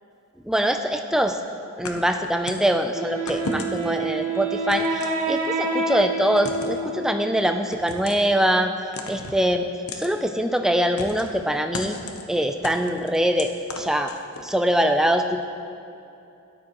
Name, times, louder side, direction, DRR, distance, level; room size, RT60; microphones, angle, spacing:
voice 1, 0.4-1.4 1.8-8.7 9.1-9.7 9.9-12.0 12.3-13.5 13.8-14.1 14.4-15.4, equal, ahead, 5 dB, 0.3 m, -23 dB
sound 1, 1.8-2.7 3.3-4.0 4.7-5.6 6.4-6.8 7.7-8.3 8.9-9.4 9.9-10.1 11.0-11.4 11.7-12.2 12.6-14.5, left 3 dB, 75° left, 0.8 m, -35 dB
Wind instrument woodwind instrument, 2.9-7.7, right 2 dB, 35° right, 1.2 m, -28 dB
12.5 x 9.7 x 3.0 m, 2.7 s
head